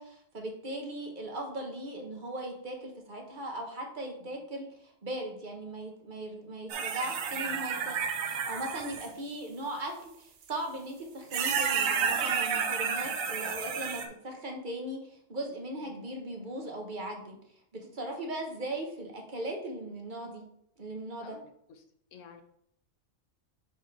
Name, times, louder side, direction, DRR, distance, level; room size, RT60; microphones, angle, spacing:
voice 1, 0.0-17.4 17.7-20.5 20.8-21.4, right 1 dB, 40° right, 1 dB, 1.1 m, -38 dB
sound 1, 6.7-9.1 10.5-10.6 11.3-14.1, right 6 dB, 80° right, 1.1 m, -31 dB
voice 2, 22.1-22.4, left 7 dB, 70° left, 7 dB, 1.1 m, -51 dB
4.8 x 4.4 x 4.6 m, 0.71 s
omnidirectional pair, 1.4 m